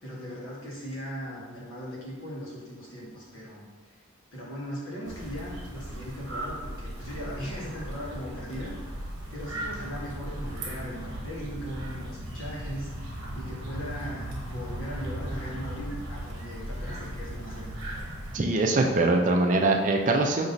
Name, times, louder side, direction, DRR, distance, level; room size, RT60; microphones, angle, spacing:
voice 1, 0.0-4.0 4.3-8.7 9.3-17.9, equal, 75° left, -6 dB, 1.3 m, -39 dB
sound 1, 5.0-18.4, right 1 dB, 70° right, 0.9 m, -37 dB
voice 2, 18.3-20.5, right 2 dB, 35° right, 2 dB, 0.4 m, -23 dB
5.3 x 2.9 x 2.6 m, 1.4 s
head